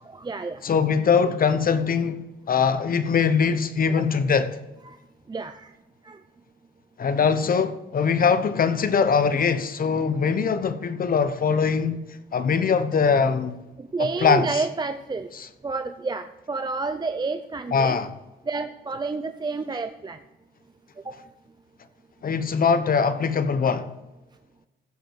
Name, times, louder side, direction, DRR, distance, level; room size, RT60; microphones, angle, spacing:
voice 1, 0.0-0.6 4.0-4.1 4.9-5.0 5.3-5.7 6.0-6.2 13.8-15.3 15.6-18.0 18.5-20.2 21.0-21.2, right 4 dB, 20° right, 0.6 m, -30 dB
voice 2, 0.6-4.6 7.0-12.0 12.3-13.6 14.0-14.6 15.3-15.5 17.7-18.1 22.2-23.9, left 6 dB, 45° left, 1.0 m, -22 dB
15.0 x 5.2 x 6.2 m
cardioid pair, 90°, 20 cm